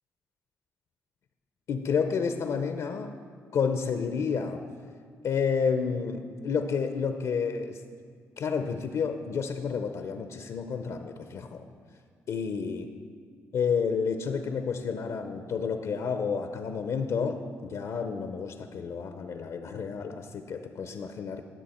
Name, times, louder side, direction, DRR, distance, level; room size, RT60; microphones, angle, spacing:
voice 1, 1.7-3.1 3.5-4.6 5.2-7.8 8.4-11.6 12.3-12.9 13.5-21.4, left 6 dB, 70° left, 7 dB, 0.5 m, -30 dB
11.5 x 6.1 x 4.2 m, 2.1 s
cardioid pair, 65°, 6 cm